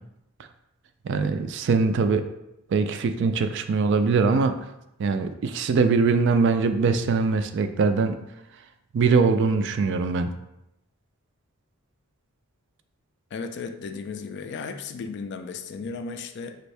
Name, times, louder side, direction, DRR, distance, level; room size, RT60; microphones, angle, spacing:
voice 1, 1.0-2.2 2.7-4.5 5.0-8.2 8.9-10.3, right 4 dB, 55° right, 8 dB, 0.3 m, -22 dB
voice 2, 13.3-16.6, left 4 dB, 55° left, 8 dB, 0.3 m, -35 dB
5.2 x 2.6 x 3.2 m, 0.85 s
head